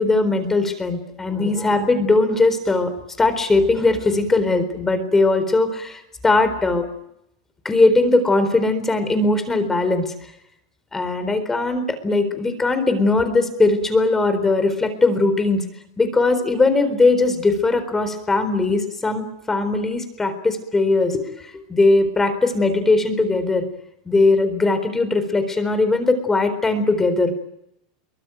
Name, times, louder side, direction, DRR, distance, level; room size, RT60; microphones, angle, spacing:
voice 1, 0.0-2.9 3.2-6.9 7.6-10.1 10.9-15.6 16.0-23.6 24.1-27.3, left 3 dB, 10° left, 10 dB, 4.1 m, -19 dB
24.0 x 23.0 x 9.3 m, 0.79 s
supercardioid pair, 150°, 3 cm